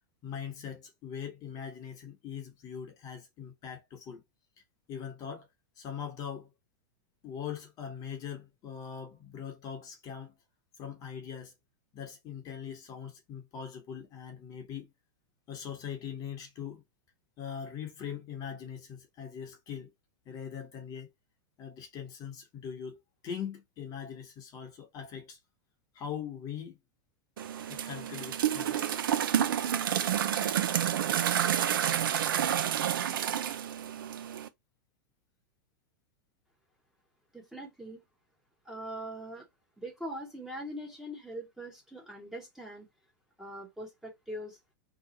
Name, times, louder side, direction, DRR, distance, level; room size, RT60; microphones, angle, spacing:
voice 1, 0.2-4.2 4.9-5.5 5.8-6.5 7.2-10.3 10.8-11.5 11.9-14.9 15.5-16.8 17.4-19.9 20.3-21.1 21.6-25.4 25.9-26.8 27.7-29.0, left 8 dB, 35° left, 1.0 m, -41 dB
sound 1, 27.4-34.5, right 10 dB, 85° right, 0.5 m, -29 dB
voice 2, 37.3-38.0 38.6-39.5 39.8-42.9 43.4-44.6, right 1 dB, 5° right, 1.0 m, -42 dB
2.9 x 2.3 x 3.9 m
hypercardioid pair, 135°, 11 cm